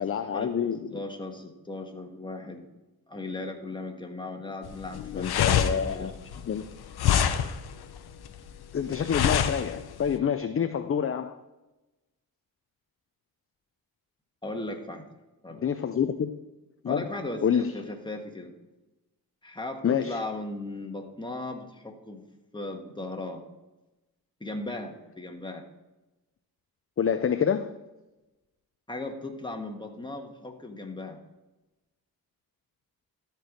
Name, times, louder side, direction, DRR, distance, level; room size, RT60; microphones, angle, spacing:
voice 1, 0.0-0.9 5.1-6.1 6.4-6.6 8.7-11.4 15.6-16.4 16.8-17.1 17.4-17.7 19.8-20.2 27.0-27.7, left 7 dB, 35° left, 9 dB, 0.5 m, -27 dB
voice 2, 0.9-2.6 3.1-6.1 14.4-15.1 15.4-15.7 16.8-18.5 19.4-22.2 22.5-23.4 24.4-25.6 28.9-31.2, left 2 dB, 10° left, 3 dB, 1.5 m, -37 dB
sound 1, 4.6-10.2, left 9 dB, 80° left, 0.7 m, -27 dB
13.5 x 4.6 x 5.1 m, 1.0 s
cardioid pair, 75°, 38 cm